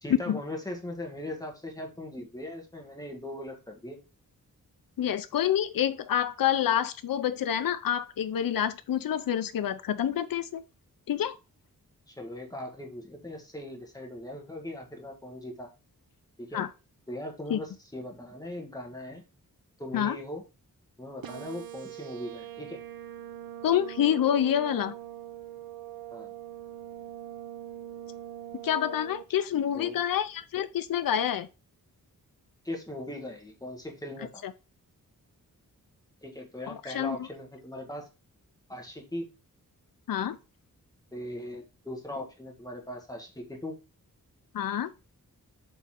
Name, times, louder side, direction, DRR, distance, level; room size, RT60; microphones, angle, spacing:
voice 1, 0.0-4.0 12.1-15.7 16.4-16.7 17.1-19.2 19.8-20.4 21.0-22.8 26.1-26.3 29.7-30.0 32.6-34.4 36.2-38.1 38.7-39.3 41.1-43.8, left 1 dB, 10° left, 1.6 m, -39 dB
voice 2, 5.0-10.6 11.1-11.4 16.5-16.7 17.5-17.6 19.9-20.2 23.6-24.9 28.6-31.5 36.7-37.2 40.1-40.4 44.5-44.9, left 10 dB, 70° left, 0.6 m, -27 dB
sound 1, 21.2-29.2, right 11 dB, 80° right, 0.8 m, -42 dB
7.0 x 4.1 x 3.6 m
wide cardioid pair, 155°, 35 cm